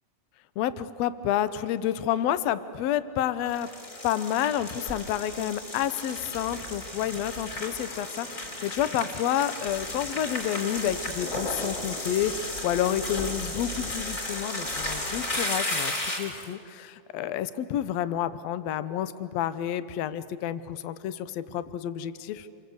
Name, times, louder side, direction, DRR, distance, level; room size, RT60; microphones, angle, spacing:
voice 1, 0.6-3.7 4.0-22.5, left 11 dB, 70° left, 14 dB, 1.7 m, -29 dB
sound 1, 3.5-16.5, left 1 dB, 25° left, 3.5 m, -34 dB
27.5 x 23.5 x 8.0 m, 2.6 s
omnidirectional pair, 3.6 m